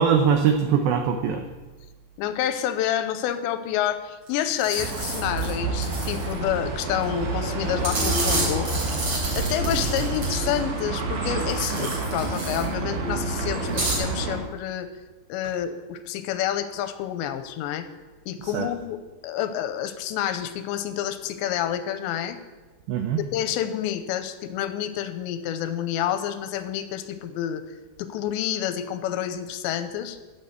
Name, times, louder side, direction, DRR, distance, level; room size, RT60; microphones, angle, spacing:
voice 1, 0.0-1.4 18.4-18.7 22.9-23.2, right 7 dB, 80° right, 5 dB, 2.1 m, -22 dB
voice 2, 2.2-8.7 9.4-14.9 15.3-17.9 18.3-19.0 19.2-22.4 23.3-27.6 28.0-30.2, left 10 dB, 90° left, 10 dB, 2.9 m, -28 dB
sound 1, 4.3-4.4 4.6-5.5 5.8-6.3 7.8-10.6 11.5-12.6 13.7-14.0, right 2 dB, 35° right, 4.2 m, -30 dB
sound 2, 4.8-14.4, right 3 dB, 60° right, 3.3 m, -28 dB
12.0 x 6.8 x 8.1 m, 1.2 s
omnidirectional pair, 5.2 m